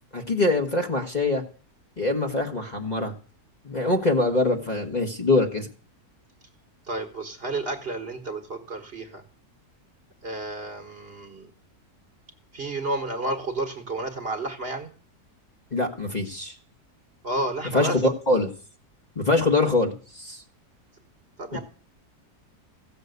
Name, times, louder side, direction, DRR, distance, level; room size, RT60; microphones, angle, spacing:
voice 1, 0.1-1.4 2.0-3.1 3.6-5.7 15.7-16.5 17.7-18.5 19.2-20.4, left 2 dB, 30° left, 3 dB, 1.5 m, -23 dB
voice 2, 6.9-9.2 10.2-11.5 12.5-14.9 17.2-18.0 21.4-21.6, right 2 dB, 40° right, 6 dB, 1.5 m, -31 dB
15.5 x 6.9 x 8.0 m, 0.41 s
omnidirectional pair, 1.6 m